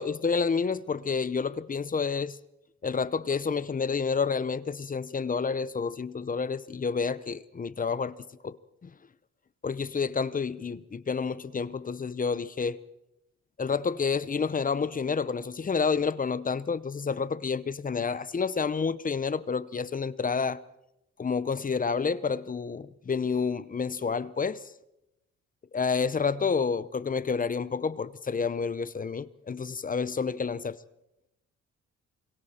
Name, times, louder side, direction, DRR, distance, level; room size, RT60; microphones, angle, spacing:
voice 1, 0.0-2.4 2.8-8.1 8.4-8.6 8.8-8.9 9.6-12.8 13.6-20.6 21.2-24.6 25.7-30.8, left 5 dB, 30° left, 0.8 m, -29 dB
26.5 x 23.0 x 4.4 m
cardioid pair, 90°, 30 cm